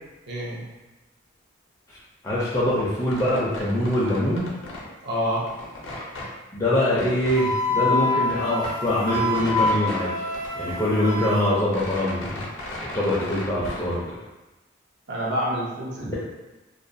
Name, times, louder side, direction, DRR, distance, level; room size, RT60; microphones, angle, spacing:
voice 1, 0.3-0.7 5.0-5.5 15.1-16.1, equal, 60° right, -3 dB, 0.5 m, -27 dB
voice 2, 2.2-4.5 6.5-10.2 10.5-12.4 12.9-14.0 16.1-16.2, left 1 dB, 15° left, -8 dB, 0.4 m, -23 dB
sound 1, 2.9-4.9 5.2-6.3 6.9-7.4 7.8-7.9 8.1-10.0 10.3-11.2 11.5-13.9, left 1 dB, 85° left, 0.5 m, -36 dB
Wind instrument woodwind instrument, 7.3-11.5, left 1 dB, 85° right, 0.8 m, -26 dB
2.3 x 2.2 x 2.5 m, 1.1 s
head